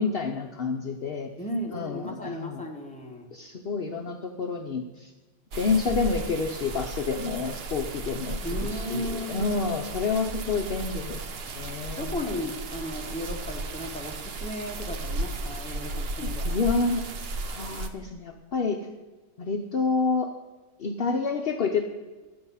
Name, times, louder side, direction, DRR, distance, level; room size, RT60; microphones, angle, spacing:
voice 1, 0.0-1.3 1.7-2.7 3.3-5.1 5.6-12.1 16.2-18.9 19.4-20.3 20.8-21.8, left 4 dB, 55° left, 3 dB, 0.9 m, -29 dB
voice 2, 1.4-3.3 8.4-9.6 12.0-16.6, left 1 dB, 5° left, 0 dB, 1.4 m, -35 dB
sound 1, 5.5-17.9, right 2 dB, 55° right, 1.0 m, -35 dB
12.0 x 7.8 x 5.6 m, 1.3 s
omnidirectional pair, 1.3 m